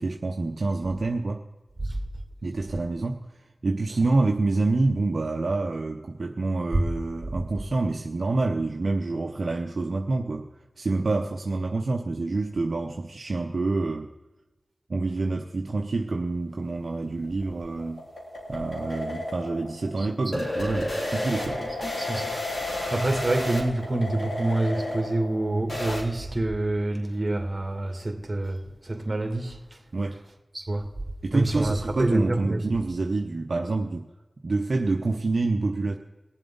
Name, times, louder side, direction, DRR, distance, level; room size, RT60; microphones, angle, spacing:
voice 1, 0.0-1.4 2.4-3.3 3.6-10.4 10.8-14.1 14.9-18.0 18.5-21.6 29.9-30.2 31.2-34.0 34.4-36.0, right 3 dB, 65° right, 0.8 m, -27 dB
sound 1, 17.1-26.0, left 1 dB, 50° left, 3.8 m, -32 dB
voice 2, 20.0-20.5 21.6-29.8 30.5-30.9 31.3-32.6, right 2 dB, 35° right, 2.4 m, -27 dB
22.0 x 7.4 x 3.9 m
cardioid pair, 45°, 0 cm